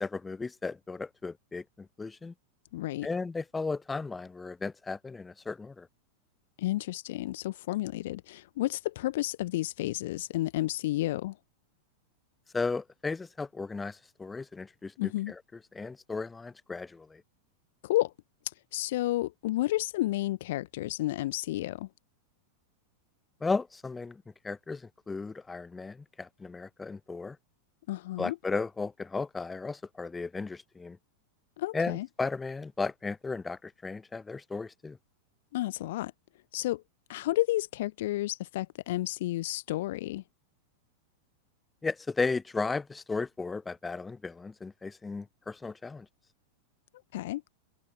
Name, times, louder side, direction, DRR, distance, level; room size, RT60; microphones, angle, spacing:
voice 1, 0.0-2.3 3.0-5.9 12.5-15.4 15.7-17.2 23.4-27.4 28.2-31.0 31.7-35.0 41.8-46.1, left 4 dB, 10° left, 0.4 m, -35 dB
voice 2, 2.7-3.1 6.6-11.4 15.0-15.3 17.8-18.1 18.4-21.9 27.9-28.4 31.6-32.1 35.5-36.1 36.5-36.8 37.1-40.2 47.1-47.5, left 16 dB, 55° left, 0.8 m, -31 dB
figure-of-eight pair, 90°, 0 cm